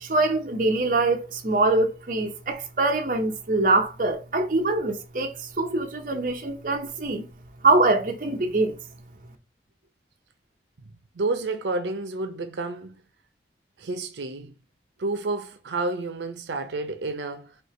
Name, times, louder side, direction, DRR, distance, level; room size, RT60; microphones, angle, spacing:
voice 1, 0.0-7.3 7.6-8.8, right 2 dB, 50° right, 0.7 m, -24 dB
voice 2, 11.1-13.0 13.8-14.6 15.0-17.6, right 3 dB, 85° right, 0.5 m, -30 dB
3.2 x 2.8 x 4.2 m
head